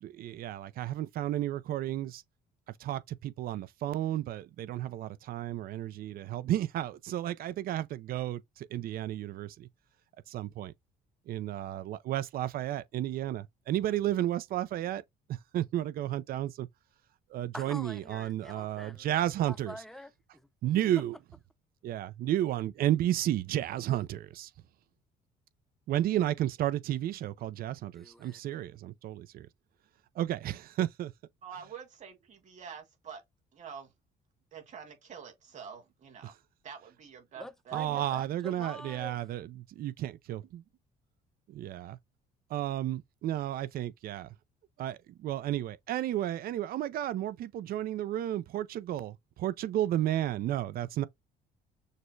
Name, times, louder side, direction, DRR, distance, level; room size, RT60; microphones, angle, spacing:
voice 1, 0.0-2.2 2.8-9.7 10.3-10.7 11.3-15.0 15.3-16.7 17.3-19.7 20.6-21.2 21.8-24.5 25.9-29.5 30.2-31.1 37.7-40.6 41.5-42.0 42.5-44.3 44.8-51.1, right 12 dB, 60° right, 0.5 m, -32 dB
voice 2, 17.5-19.1 19.4-20.5 27.9-28.4 37.4-39.2, left 1 dB, ahead, 0.6 m, -46 dB
voice 3, 31.4-33.2 33.5-33.9 34.5-36.4 36.6-37.9, right 7 dB, 45° right, 1.9 m, -47 dB
6.6 x 2.2 x 3.1 m
cardioid pair, 110°, 17 cm